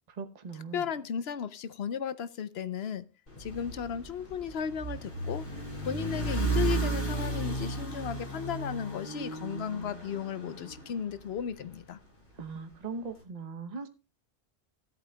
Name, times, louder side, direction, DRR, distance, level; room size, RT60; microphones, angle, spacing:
voice 1, 0.2-0.9 12.4-13.9, right 4 dB, 40° right, 1.0 m, -39 dB
voice 2, 0.7-3.0 3.4-5.4 5.8-12.0, left 7 dB, 70° left, 0.9 m, -35 dB
sound 1, 3.3-11.6, right 2 dB, 50° left, 3.3 m, -34 dB
17.0 x 8.4 x 2.3 m
omnidirectional pair, 1.1 m